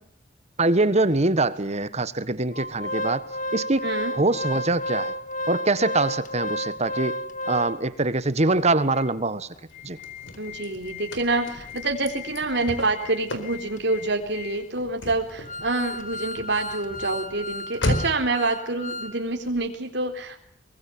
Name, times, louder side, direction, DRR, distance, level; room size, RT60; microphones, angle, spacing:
voice 1, 0.6-3.2 3.5-3.8 4.1-5.1 5.5-7.2 7.5-9.5 9.8-10.0, right 2 dB, 35° right, 14 dB, 1.5 m, -23 dB
Organ, 2.5-8.1 8.6-8.7 8.9-9.1 9.6-19.2 19.5-19.6, left 1 dB, 40° left, 1.9 m, -34 dB
voice 2, 3.8-4.1 10.4-20.4, right 2 dB, 65° right, 4 dB, 4.1 m, -27 dB
Car / Slam, 9.7-18.4, left 1 dB, 80° left, 4.4 m, -35 dB
23.5 x 23.0 x 9.4 m, 0.63 s
head